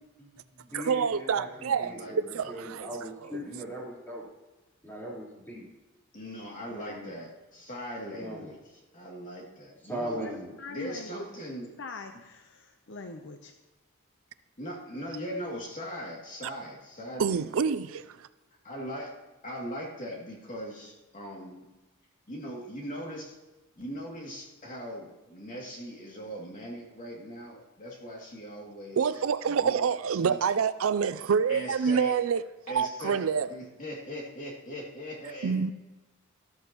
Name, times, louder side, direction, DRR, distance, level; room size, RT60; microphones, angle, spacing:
voice 1, 0.2-4.3 4.8-5.7 6.7-7.1 8.1-8.5 9.8-10.6, equal, 10° left, 3.9 m, -39 dB
voice 2, 0.7-1.9 2.3-2.9 17.2-18.0 29.0-32.4 32.7-33.5 35.4-35.7, right 6 dB, 75° right, 0.4 m, -27 dB
voice 3, 1.8-2.5 6.1-8.6 8.9-10.2 10.7-11.7 14.6-17.6 18.6-19.1 19.4-21.6 22.3-23.4 23.8-29.2 29.6-29.8 30.2-30.4 31.5-32.2 32.7-33.2 33.5-35.7, equal, 40° left, 2.6 m, -40 dB
voice 4, 10.6-11.3 11.8-13.5, left 3 dB, 60° left, 0.8 m, -42 dB
13.5 x 13.0 x 3.0 m
head